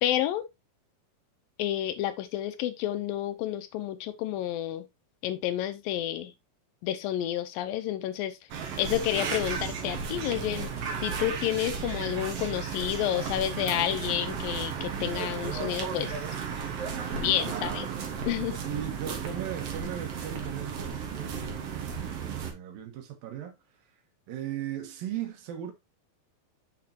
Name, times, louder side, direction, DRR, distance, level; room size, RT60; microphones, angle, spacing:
voice 1, 0.0-0.4 1.6-4.9 5.2-6.3 6.8-8.4 8.8-10.7 11.0-16.2 17.1-17.9 18.3-18.6, left 12 dB, 80° left, 2.4 m, -30 dB
sound 1, 8.5-22.5, right 6 dB, 55° right, 1.9 m, -34 dB
voice 2, 17.4-17.9 18.5-22.0 22.2-23.6 24.3-25.7, right 10 dB, 80° right, 2.9 m, -38 dB
6.6 x 6.3 x 2.8 m
omnidirectional pair, 4.1 m